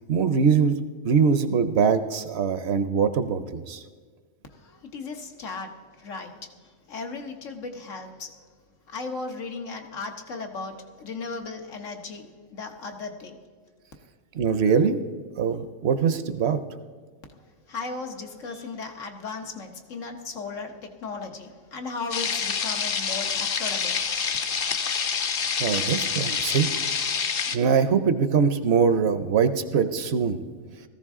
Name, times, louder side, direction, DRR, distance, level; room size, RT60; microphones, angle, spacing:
voice 1, 0.1-0.8 1.0-3.8 14.3-15.0 15.4-16.6 25.6-26.7 27.5-30.4, right 6 dB, 65° right, 11 dB, 0.9 m, -22 dB
voice 2, 4.5-8.4 8.9-13.4 17.4-24.0, left 4 dB, 90° left, 3 dB, 1.5 m, -36 dB
sound 1, 22.1-27.6, left 6 dB, 55° left, 0.8 m, -27 dB
17.0 x 14.0 x 3.6 m, 1.5 s
omnidirectional pair, 1.3 m